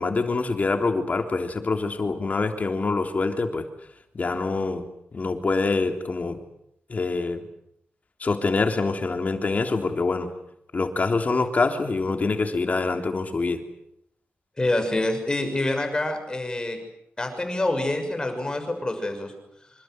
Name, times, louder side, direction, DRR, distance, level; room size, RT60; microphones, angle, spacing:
voice 1, 0.0-3.7 4.1-4.9 5.1-6.4 6.9-7.5 8.2-10.3 10.7-13.6, left 3 dB, 40° left, 5 dB, 3.4 m, -25 dB
voice 2, 14.6-16.8 17.2-19.3, left 2 dB, 20° left, 6 dB, 6.4 m, -26 dB
27.0 x 26.5 x 8.0 m, 0.74 s
wide cardioid pair, 150°, 4 cm